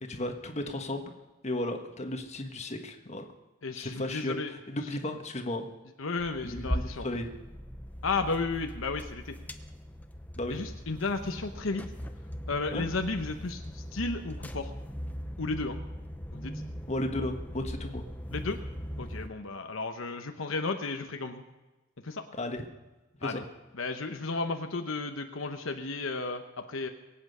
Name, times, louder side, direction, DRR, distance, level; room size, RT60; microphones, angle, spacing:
voice 1, 0.0-1.1 1.4-3.3 3.7-5.7 6.4-6.7 7.0-7.3 10.3-10.7 12.7-12.8 16.9-18.0 22.4-22.7 23.2-23.4, left 1 dB, 35° left, 4 dB, 1.4 m, -34 dB
voice 2, 3.6-4.5 6.0-7.1 8.0-9.4 10.5-11.8 12.5-14.7 15.4-15.8 16.3-16.5 18.3-18.6 19.0-21.4 22.0-22.2 23.2-23.4 23.8-26.9, left 3 dB, 70° left, 6 dB, 1.0 m, -33 dB
sound 1, 6.2-19.3, equal, 10° left, 0.7 m, -39 dB
23.0 x 8.8 x 5.6 m, 1.1 s
head